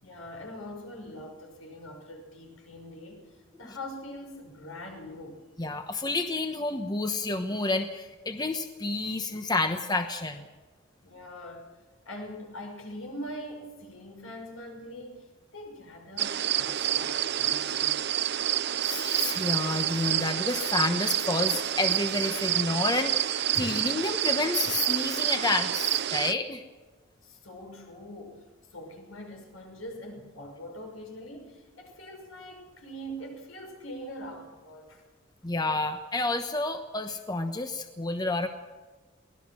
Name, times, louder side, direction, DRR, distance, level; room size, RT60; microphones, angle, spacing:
voice 1, 0.0-5.4 11.0-11.7 12.1-18.1 27.2-35.0, equal, 90° left, 3 dB, 5.7 m, -43 dB
voice 2, 5.6-10.4 18.8-26.6 35.4-38.5, left 2 dB, 20° left, 7 dB, 1.1 m, -29 dB
sound 1, 16.2-26.3, right 11 dB, 55° right, 0.6 m, -28 dB
24.0 x 18.0 x 6.3 m, 1.3 s
head